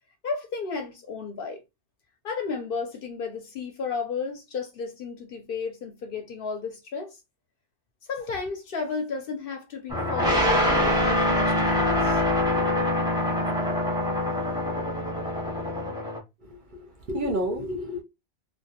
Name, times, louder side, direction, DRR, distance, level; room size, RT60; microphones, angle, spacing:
voice 1, 0.2-1.6 2.2-7.2 8.1-12.2, left 5 dB, 60° left, 0.6 m, -33 dB
sound 1, 9.9-16.2, left 1 dB, 5° right, 0.6 m, -24 dB
voice 2, 16.4-18.0, equal, 55° right, 0.6 m, -30 dB
2.2 x 2.0 x 2.8 m
omnidirectional pair, 1.2 m